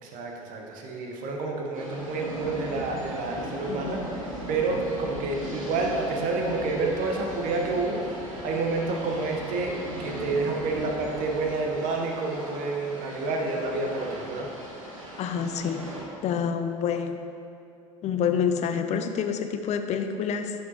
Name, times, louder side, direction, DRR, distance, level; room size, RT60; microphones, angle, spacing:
voice 1, 0.0-4.2 4.5-14.5, right 3 dB, 55° right, 1 dB, 1.1 m, -29 dB
sound 1, 1.7-16.0, right 1 dB, 90° right, 1.1 m, -38 dB
voice 2, 3.7-4.0 15.2-15.8 16.2-17.2 18.0-20.5, left 7 dB, 40° left, 8 dB, 0.6 m, -27 dB
11.0 x 5.2 x 3.0 m, 2.5 s
figure-of-eight pair, 65°, 17 cm